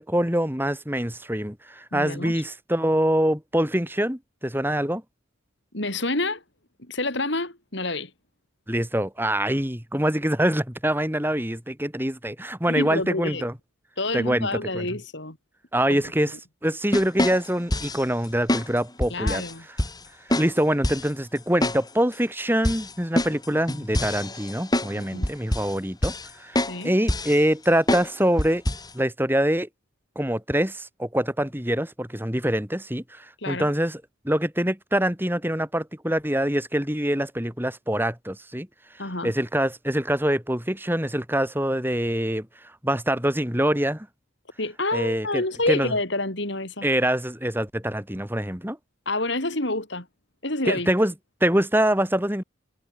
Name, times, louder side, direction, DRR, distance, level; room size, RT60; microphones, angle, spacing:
voice 1, 0.0-5.0 8.7-13.5 14.1-14.9 15.7-16.3 16.6-19.4 20.4-28.6 28.9-29.7 30.1-38.7 39.2-42.5 42.8-44.1 44.9-45.9 46.8-48.8 50.7-51.1 51.4-52.4, right 1 dB, 10° right, 4.7 m, -25 dB
voice 2, 1.9-2.4 5.7-6.4 6.8-8.1 12.7-13.5 14.0-15.4 15.9-16.0 19.1-19.7 25.0-25.3 26.7-26.9 33.4-33.7 39.0-39.3 44.6-46.9 49.0-50.1 50.4-50.9, left 2 dB, 55° left, 4.8 m, -28 dB
sound 1, 16.9-18.0 18.5-18.7 19.0-19.5 19.8-19.9 20.3-20.5 20.8-21.1 21.6-21.8 22.1-22.2 22.6-24.9 25.2-25.7 26.0-26.3 26.6-26.8 27.1-27.4 27.9-28.1 28.4-28.9, left 1 dB, 20° left, 6.8 m, -25 dB
head